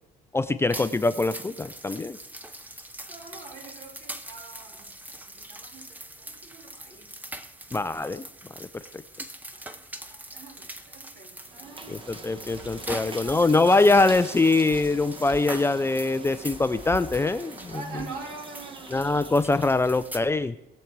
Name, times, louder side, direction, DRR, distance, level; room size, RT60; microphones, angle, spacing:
voice 1, 0.3-2.2 7.7-8.2 8.7-8.8 11.9-17.7 18.9-20.5, left 3 dB, 15° left, 13 dB, 0.4 m, -23 dB
sound 1, 0.7-20.2, right 1 dB, 10° right, 0.9 m, -42 dB
voice 2, 3.1-4.9 5.3-7.1 9.5-12.0 12.9-14.0 17.7-19.1, right 4 dB, 65° right, 1 dB, 3.3 m, -44 dB
sound 2, 11.4-19.8, right 3 dB, 30° right, 1.3 m, -43 dB
20.0 x 7.3 x 4.6 m, 0.86 s
cardioid pair, 110°, 17 cm